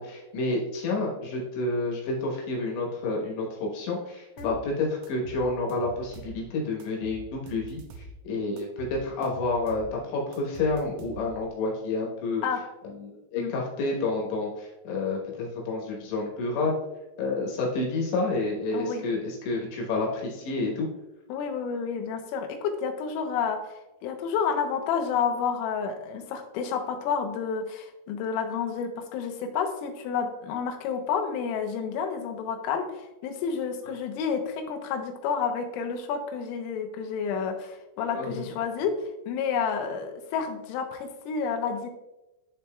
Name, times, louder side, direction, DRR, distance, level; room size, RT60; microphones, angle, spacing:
voice 1, 0.0-7.8 8.2-12.4 13.0-16.8 17.2-20.9 38.1-38.3, left 3 dB, 70° left, -2 dB, 3.0 m, -29 dB
sound 1, 4.4-4.6 5.0-6.4 6.8-8.2 8.6-9.9 10.3-11.5, right 3 dB, 80° right, 3.1 m, -44 dB
voice 2, 18.7-19.1 21.3-39.0 39.3-41.9, left 6 dB, 90° left, 5 dB, 3.4 m, -30 dB
11.5 x 4.1 x 2.2 m, 0.97 s
omnidirectional pair, 5.8 m